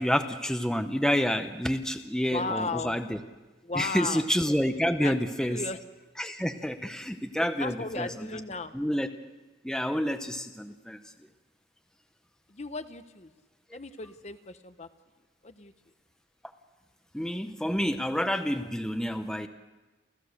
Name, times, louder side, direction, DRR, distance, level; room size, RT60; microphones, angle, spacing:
voice 1, 0.0-3.2 3.8-5.6 6.2-8.3 8.7-9.1 9.6-11.0 17.1-19.5, equal, 5° left, 7 dB, 0.7 m, -28 dB
voice 2, 2.3-3.0 3.6-4.2 5.0-5.1 5.4-5.8 7.6-8.8 12.5-13.3 13.7-14.9 15.4-15.7, left 3 dB, 35° left, 11 dB, 0.8 m, -35 dB
28.5 x 15.0 x 6.6 m, 1.2 s
head